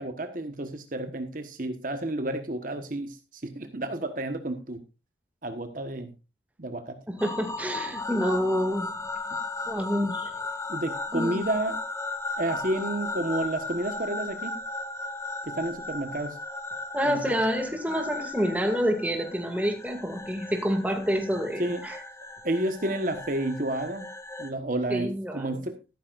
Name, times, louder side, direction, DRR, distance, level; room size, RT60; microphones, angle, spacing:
voice 1, 0.0-4.8 5.4-6.1 6.6-7.0 10.7-11.8 12.4-14.6 15.4-16.4 17.0-17.4 21.6-21.8 22.4-24.1 24.4-25.8, right 1 dB, 45° right, 7 dB, 1.3 m, -30 dB
sound 1, 7.2-24.5, left 3 dB, 15° left, 1.3 m, -36 dB
voice 2, 7.2-8.9 9.7-10.3 11.1-11.4 16.9-22.0 24.9-25.6, equal, 10° right, 4 dB, 2.3 m, -28 dB
14.0 x 12.5 x 2.5 m, 0.29 s
head